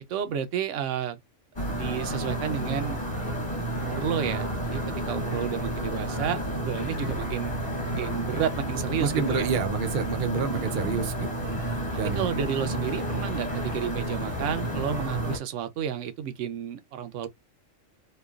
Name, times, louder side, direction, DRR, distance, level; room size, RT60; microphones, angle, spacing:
voice 1, 0.1-1.2 1.7-3.0 3.8-7.5 7.9-9.5 10.5-10.9 12.1-17.3, right 8 dB, 80° right, 1.0 m, -31 dB
sound 1, 1.6-15.4, right 1 dB, 30° left, 1.2 m, -31 dB
voice 2, 9.0-11.6 12.0-12.3, right 6 dB, 55° right, 0.6 m, -28 dB
3.1 x 2.3 x 2.3 m
omnidirectional pair, 1.2 m